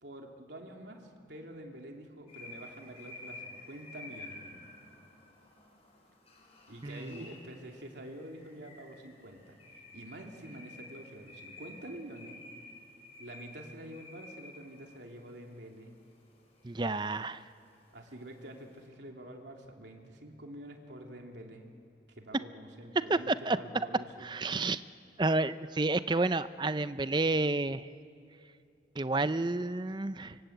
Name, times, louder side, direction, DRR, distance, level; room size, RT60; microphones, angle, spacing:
voice 1, 0.0-4.7 6.7-9.6 9.9-12.4 13.2-15.9 17.9-21.6 22.1-24.3, right 1 dB, 70° right, 2 dB, 3.0 m, -47 dB
sound 1, 2.3-18.8, left 2 dB, 35° left, 6.2 m, -52 dB
voice 2, 6.8-7.2 16.6-17.4 23.1-23.6 24.2-24.8 25.2-27.9 29.0-30.4, right 2 dB, 25° right, 13 dB, 0.5 m, -30 dB
25.0 x 25.0 x 8.1 m, 2.5 s
head